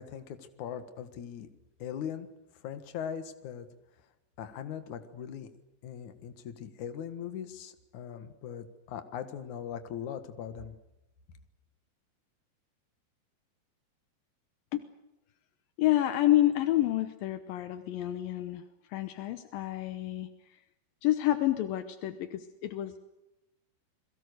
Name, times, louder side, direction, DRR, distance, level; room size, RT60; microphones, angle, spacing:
voice 1, 0.0-1.5 1.8-2.3 2.6-3.7 4.4-5.5 5.8-10.8, left 8 dB, 55° left, 9 dB, 2.3 m, -40 dB
voice 2, 15.8-18.6 18.9-20.3 21.0-23.0, left 14 dB, 80° left, 10 dB, 2.1 m, -28 dB
29.5 x 22.0 x 6.7 m, 0.90 s
omnidirectional pair, 5.4 m